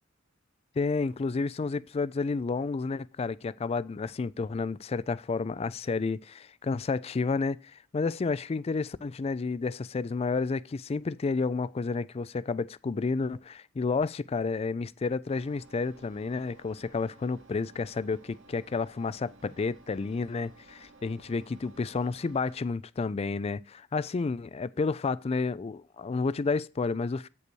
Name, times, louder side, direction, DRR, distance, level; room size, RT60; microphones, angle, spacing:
voice 1, 0.8-27.3, left 4 dB, 30° left, 0.3 m, -31 dB
Engine, 15.3-22.6, right 2 dB, 70° right, 1.4 m, -56 dB
8.4 x 5.4 x 6.1 m
head